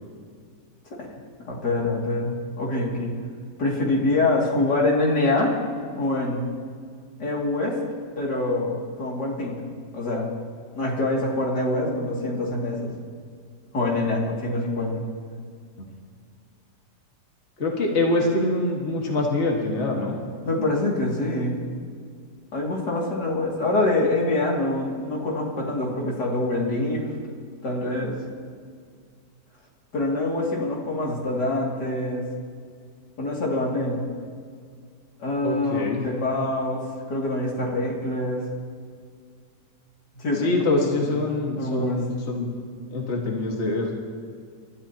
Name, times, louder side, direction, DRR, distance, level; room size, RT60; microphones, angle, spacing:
voice 1, 1.5-3.1 3.6-5.6 5.9-6.5 7.2-7.8 8.2-9.6 9.9-10.3 10.7-12.9 13.7-15.0 20.4-21.6 22.5-27.0 27.6-28.2 29.9-32.2 33.2-34.1 35.2-38.4 40.2-40.6 41.1-41.2 41.6-42.0, left 2 dB, 80° left, -3 dB, 3.1 m, -25 dB
voice 2, 17.6-20.2 35.4-36.1 40.4-42.5 42.9-43.9, left 2 dB, 40° left, -1 dB, 2.0 m, -25 dB
30.0 x 13.0 x 2.9 m, 2.1 s
omnidirectional pair, 1.8 m